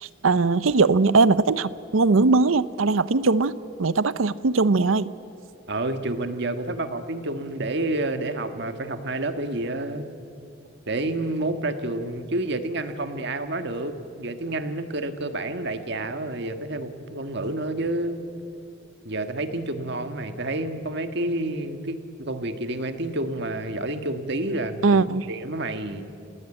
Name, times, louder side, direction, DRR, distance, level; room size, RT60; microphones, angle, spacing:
voice 1, 0.0-5.1 24.8-25.3, right 3 dB, 80° right, 16 dB, 0.7 m, -20 dB
voice 2, 5.7-10.1 10.9-18.3 19.0-26.0, right 2 dB, 55° right, 8 dB, 1.6 m, -29 dB
28.0 x 18.5 x 8.9 m, 2.8 s
head